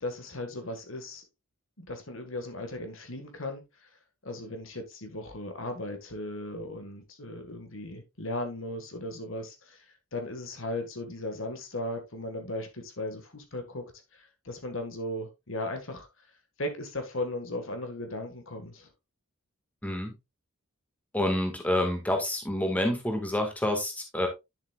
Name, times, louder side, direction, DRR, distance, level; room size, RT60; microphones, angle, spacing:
voice 1, 0.0-1.2 1.8-3.6 4.2-9.8 10.1-13.8 14.1-16.1 16.6-18.9, left 1 dB, 60° left, 1.7 m, -37 dB
voice 2, 19.8-20.1 21.1-24.3, left 1 dB, 5° left, 1.7 m, -28 dB
10.0 x 7.1 x 2.4 m
head